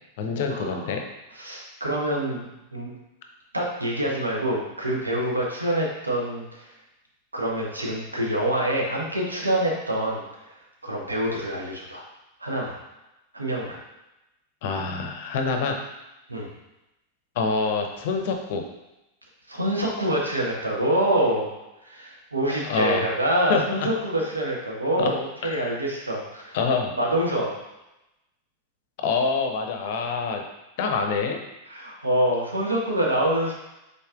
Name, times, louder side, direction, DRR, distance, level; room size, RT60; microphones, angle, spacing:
voice 1, 0.2-1.0 14.6-15.8 17.4-18.6 22.6-23.1 23.5-23.6 25.0-25.1 25.4-25.7 26.5-26.9 29.0-30.4 30.8-31.4, left 4 dB, 50° left, 4 dB, 0.6 m, -26 dB
voice 2, 1.3-2.9 3.5-6.7 7.3-10.2 10.8-12.0 12.4-12.7 13.3-13.8 16.3-16.5 19.5-21.5 21.8-26.6 27.0-27.5 31.7-33.5, right 1 dB, 80° right, -2 dB, 1.0 m, -26 dB
5.5 x 3.9 x 2.4 m, 0.95 s
figure-of-eight pair, 90°, 0 cm